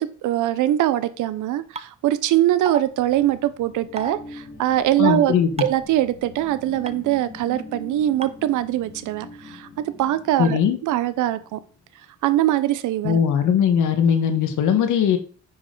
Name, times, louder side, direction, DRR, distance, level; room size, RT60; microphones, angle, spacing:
voice 1, 0.0-5.3 5.6-9.7 10.0-11.6 12.2-13.2, right 13 dB, 85° right, 14 dB, 0.8 m, -22 dB
sound 1, 1.8-1.9 2.7-2.8 4.0-4.1 5.6-5.8 6.9-7.0 8.2-8.3, right 3 dB, 20° right, 0.7 m, -30 dB
sound 2, 2.7-11.9, left 2 dB, 35° left, 4.0 m, -43 dB
voice 2, 5.0-5.5 10.4-10.8 13.0-15.2, left 8 dB, 80° left, 8 dB, 1.4 m, -19 dB
9.6 x 5.6 x 3.8 m, 0.41 s
cardioid pair, 90°, 30 cm